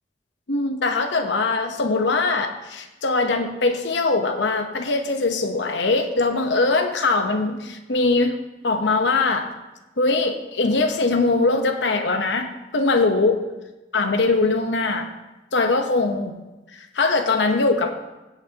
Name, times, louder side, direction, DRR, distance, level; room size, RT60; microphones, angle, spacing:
voice 1, 0.5-8.3 8.6-9.5 10.0-13.4 13.9-15.1 15.5-16.3 16.8-17.9, left 3 dB, 85° left, 6 dB, 0.9 m, -21 dB
16.0 x 8.2 x 2.9 m, 1.0 s
head